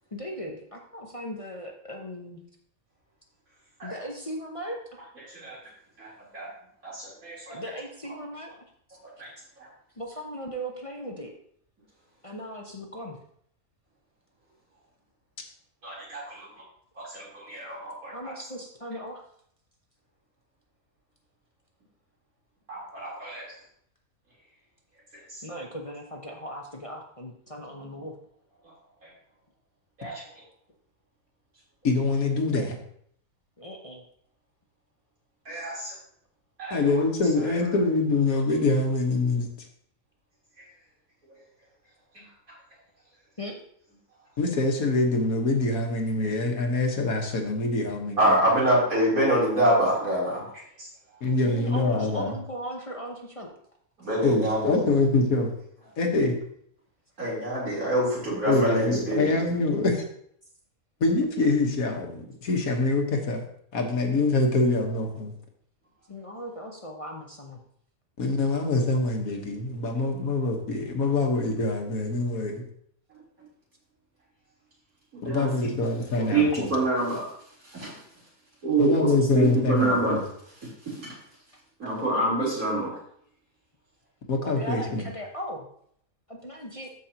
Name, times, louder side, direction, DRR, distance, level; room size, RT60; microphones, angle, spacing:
voice 1, 0.1-2.4 3.8-5.0 7.5-8.5 8.9-9.0 10.0-11.3 12.2-13.2 18.1-19.2 25.4-28.1 33.6-34.0 43.4-43.6 51.4-53.5 66.1-67.6 75.6-75.8 84.4-85.7 86.3-86.9, equal, 30° left, 0 dB, 0.8 m, -38 dB
voice 2, 5.2-5.6 6.0-6.5 7.0-7.6 9.2-9.3 15.8-16.5 17.0-18.3 22.7-23.5 25.1-25.4 29.0-29.1 30.0-30.2 35.5-36.0 36.6-36.9 42.1-42.3 48.2-50.4 50.8-50.9 54.0-54.8 57.2-59.4 73.1-73.2 75.1-75.7 76.2-77.3 77.6-78.0 78.6-80.2 80.9-81.2 81.8-83.0, right 1 dB, 80° right, -6 dB, 4.1 m, -26 dB
voice 3, 31.8-32.8 36.7-39.5 44.4-48.4 51.2-52.4 54.2-55.5 56.0-56.4 58.5-60.0 61.0-63.4 63.7-65.3 68.2-72.6 75.2-76.7 78.8-80.2 84.3-85.1, left 3 dB, 80° left, 2 dB, 1.8 m, -25 dB
13.0 x 5.3 x 2.9 m, 0.66 s
omnidirectional pair, 1.5 m